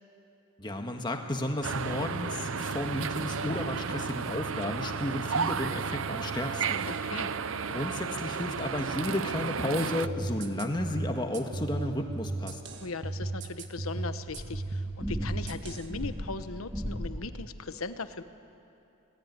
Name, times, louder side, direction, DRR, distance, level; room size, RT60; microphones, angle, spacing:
voice 1, 0.6-6.9 7.7-12.6, left 1 dB, 20° left, 4 dB, 1.7 m, -33 dB
sound 1, 1.6-10.1, right 6 dB, 70° right, 0.6 m, -33 dB
voice 2, 6.9-7.3 12.7-18.2, left 3 dB, 85° left, 10 dB, 1.1 m, -38 dB
sound 2, 10.0-16.1, right 2 dB, 55° right, 1.5 m, -36 dB
sound 3, 12.4-12.5 14.3-17.3, equal, 10° right, 2.2 m, -37 dB
26.0 x 19.5 x 9.6 m, 2.7 s
head